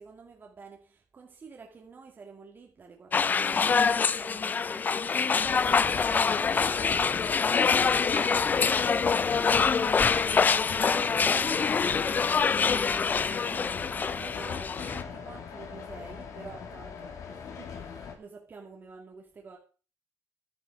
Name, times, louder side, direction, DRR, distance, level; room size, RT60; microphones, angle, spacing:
voice 1, 0.0-8.1 10.3-19.6, right 4 dB, 35° right, 2.1 m, -49 dB
sound 1, 3.1-15.0, left 5 dB, 30° left, 0.5 m, -25 dB
sound 2, 5.4-18.1, left 6 dB, 60° left, 2.7 m, -40 dB
voice 2, 7.2-9.2 16.5-16.7, right 7 dB, 75° right, 4.8 m, -50 dB
12.0 x 10.0 x 4.6 m
cardioid pair, 130°, 6 cm